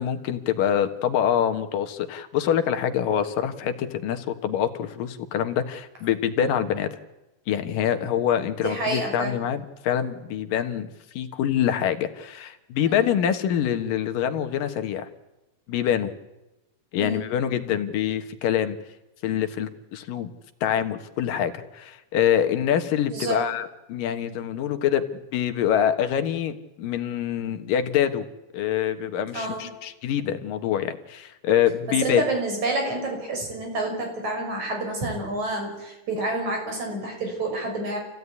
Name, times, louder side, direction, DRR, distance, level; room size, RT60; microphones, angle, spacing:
voice 1, 0.0-7.0 7.5-10.9 11.1-15.1 15.7-16.1 16.9-18.8 19.2-20.3 20.6-28.3 28.5-32.2, left 9 dB, 90° left, 8 dB, 3.1 m, -25 dB
voice 2, 8.6-9.4 12.9-13.0 17.0-17.3 23.1-23.4 29.3-29.7 32.0-38.0, right 2 dB, 60° right, 2 dB, 7.4 m, -28 dB
28.0 x 16.0 x 9.7 m, 1.0 s
omnidirectional pair, 3.8 m